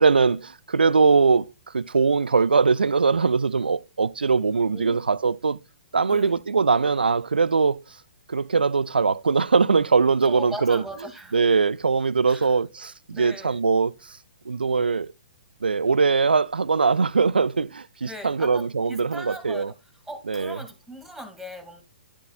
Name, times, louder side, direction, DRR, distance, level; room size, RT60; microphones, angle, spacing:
voice 1, 0.0-5.6 5.9-7.8 8.3-10.8 11.3-14.2 14.5-15.1 15.6-19.7 20.3-20.6, right 4 dB, 75° right, 0.4 m, -21 dB
voice 2, 6.0-6.4 10.2-11.4 12.3-12.6 13.1-13.6 18.0-19.7 20.1-21.8, equal, ahead, 2.2 m, -39 dB
11.5 x 7.1 x 2.3 m
figure-of-eight pair, 120°, 5 cm